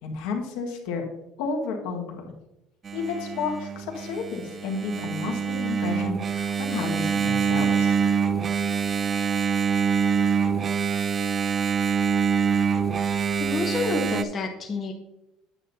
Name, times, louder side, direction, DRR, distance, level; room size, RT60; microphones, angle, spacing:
voice 1, 0.0-1.0 1.4-2.2 2.9-7.9, left 5 dB, 80° left, 2 dB, 1.7 m, -31 dB
Engine, 2.8-14.2, right 6 dB, 20° right, 0.4 m, -25 dB
voice 2, 13.4-14.9, left 3 dB, 20° left, 1 dB, 0.9 m, -28 dB
8.8 x 8.0 x 2.8 m, 0.88 s
cardioid pair, 175°, 0 cm